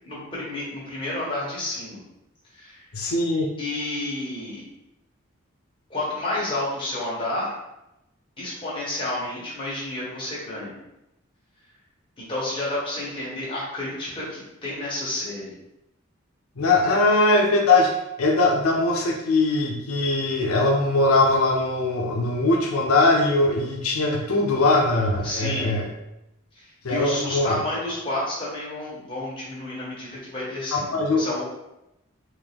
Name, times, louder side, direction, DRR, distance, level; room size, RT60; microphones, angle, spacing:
voice 1, 0.0-2.0 2.5-2.9 3.6-4.7 5.9-7.6 8.4-10.8 12.2-15.5 16.8-16.9 25.2-25.8 26.5-31.4, left 1 dB, 25° left, -7 dB, 1.3 m, -30 dB
voice 2, 2.9-3.5 16.6-17.9 18.2-25.9 26.8-27.6 30.7-31.2, left 2 dB, 85° left, 0 dB, 0.6 m, -21 dB
3.6 x 2.7 x 3.5 m, 0.89 s
head